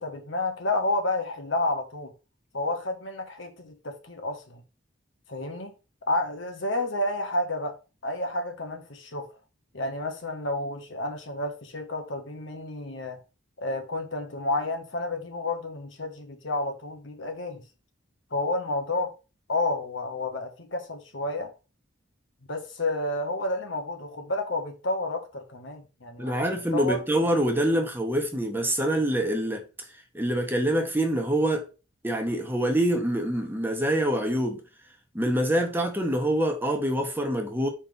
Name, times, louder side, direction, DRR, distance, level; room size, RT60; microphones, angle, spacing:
voice 1, 0.0-2.1 2.5-4.6 5.3-5.7 6.0-7.8 8.0-9.3 9.7-13.2 13.6-17.6 18.3-19.1 19.5-21.5 22.5-27.0, left 2 dB, 70° left, 1.5 m, -30 dB
voice 2, 26.2-29.6 30.1-31.6 32.0-34.6 35.1-37.7, right 1 dB, 10° right, 1.1 m, -25 dB
5.3 x 4.4 x 5.2 m
head